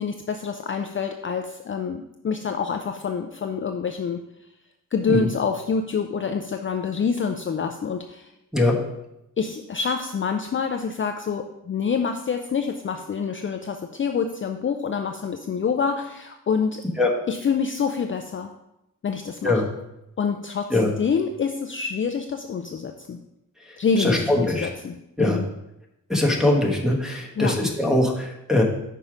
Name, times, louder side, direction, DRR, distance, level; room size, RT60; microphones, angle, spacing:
voice 1, 0.0-4.2 4.9-8.3 9.4-16.8 17.3-18.5 19.0-19.6 20.2-23.2 23.8-25.5 27.4-27.6, left 6 dB, 40° left, 6 dB, 0.4 m, -27 dB
voice 2, 24.0-24.7 25.2-25.4 26.1-28.6, left 1 dB, ahead, 0 dB, 1.2 m, -21 dB
5.5 x 4.6 x 5.0 m, 0.86 s
wide cardioid pair, 110°, 33 cm